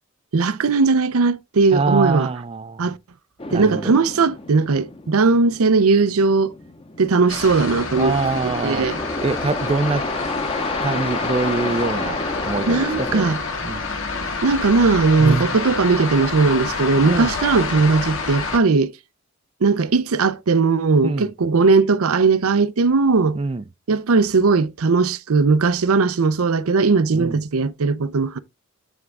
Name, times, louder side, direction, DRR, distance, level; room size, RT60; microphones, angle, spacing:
voice 1, 0.3-2.3 2.8-3.0 3.5-6.5 7.0-8.2 8.6-9.0 12.7-13.4 14.4-18.9 19.6-23.4 23.9-28.4, right 4 dB, 85° right, 0.6 m, -18 dB
voice 2, 1.7-2.8 3.5-4.0 8.0-8.9 9.2-10.0 10.8-12.2 12.4-13.3 13.6-13.8 15.2-15.5 17.0-17.3 21.0-21.3 23.3-23.6 27.1-27.4, right 3 dB, 25° right, 0.4 m, -24 dB
sound 1, 3.4-13.2, left 2 dB, 25° left, 0.8 m, -30 dB
sound 2, 7.3-18.6, left 4 dB, 60° left, 1.9 m, -28 dB
9.1 x 3.6 x 3.5 m
head